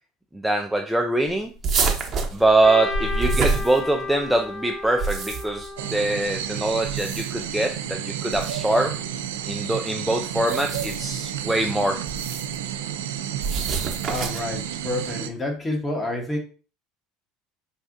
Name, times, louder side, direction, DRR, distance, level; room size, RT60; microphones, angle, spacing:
voice 1, 0.3-1.5 2.3-9.0 9.5-12.0, right 2 dB, 5° right, 3 dB, 0.4 m, -23 dB
sound 1, 1.6-4.3 4.8-5.7 6.8-7.5 8.3-8.6 10.3-11.1 12.1-12.6 13.4-14.6, right 4 dB, 40° right, 0.8 m, -27 dB
Trumpet, 2.6-6.8, left 2 dB, 65° left, 1.3 m, -34 dB
sound 2, 5.8-15.3, right 10 dB, 85° right, 0.3 m, -31 dB
voice 2, 14.1-16.4, left 1 dB, 20° left, 2 dB, 1.1 m, -28 dB
4.1 x 2.4 x 2.6 m, 0.37 s
hypercardioid pair, 85°, 0 cm